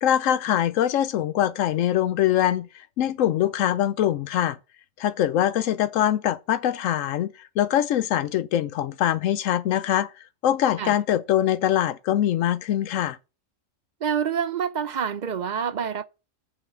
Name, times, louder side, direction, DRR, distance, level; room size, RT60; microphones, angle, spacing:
voice 1, 0.0-4.6 5.0-10.1 10.4-13.2, left 11 dB, 80° left, 1.0 m, -23 dB
voice 2, 14.0-16.0, right 7 dB, 55° right, 0.5 m, -27 dB
7.1 x 5.6 x 6.3 m
omnidirectional pair, 1.3 m